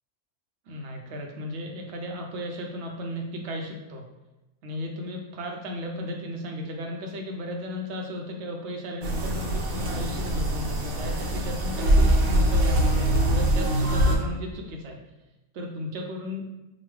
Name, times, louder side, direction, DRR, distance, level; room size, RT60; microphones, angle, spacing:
voice 1, 0.7-4.0 4.6-15.0 15.5-16.6, left 1 dB, 60° right, 1 dB, 0.9 m, -35 dB
sound 1, 9.0-14.2, right 1 dB, 75° right, 1.1 m, -23 dB
5.1 x 2.3 x 3.2 m, 1.0 s
omnidirectional pair, 1.5 m